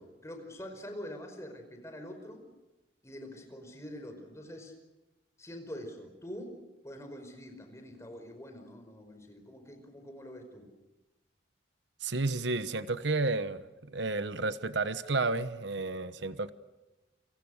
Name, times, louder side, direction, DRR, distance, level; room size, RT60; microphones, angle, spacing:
voice 1, 0.0-2.4 3.0-4.7 5.4-6.6 6.8-10.7, equal, 15° left, 5.2 m, -45 dB
voice 2, 12.0-13.6 13.9-16.5, right 3 dB, 75° right, 1.1 m, -31 dB
29.5 x 25.5 x 6.6 m
head